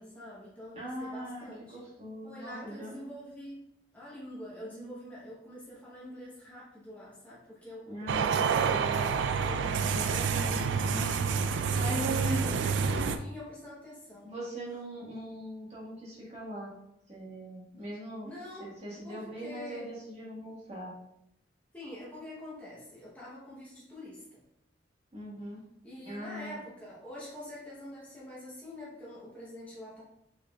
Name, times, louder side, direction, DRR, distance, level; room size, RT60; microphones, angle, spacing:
voice 1, 0.0-1.8 2.2-10.3 10.7-10.9 11.5-14.3 18.2-18.8 19.0-19.9 21.7-24.4 25.8-30.0, left 1 dB, 10° left, -7 dB, 0.9 m, -46 dB
voice 2, 0.7-2.9 7.9-9.2 9.9-11.5 11.8-12.4 14.2-16.7 17.1-18.3 18.6-20.9 25.1-25.6 26.0-26.6, equal, 35° right, -7 dB, 1.6 m, -40 dB
sound 1, 8.1-13.2, right 5 dB, 70° right, 0.3 m, -28 dB
4.7 x 3.8 x 2.3 m, 0.80 s
head